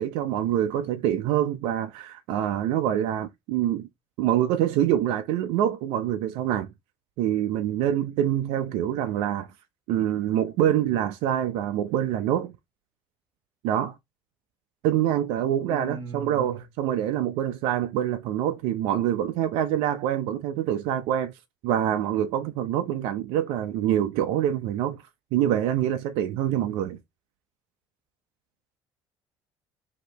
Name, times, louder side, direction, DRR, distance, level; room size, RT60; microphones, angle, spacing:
voice 1, 0.0-3.9 4.2-6.7 7.2-9.5 9.9-12.5 13.6-14.0 14.8-21.3 21.6-25.0 25.3-27.0, right 11 dB, 80° right, 0.6 m, -25 dB
voice 2, 15.7-16.6, right 5 dB, 50° right, 1.6 m, -37 dB
4.9 x 2.9 x 3.4 m
supercardioid pair, 95°, 9 cm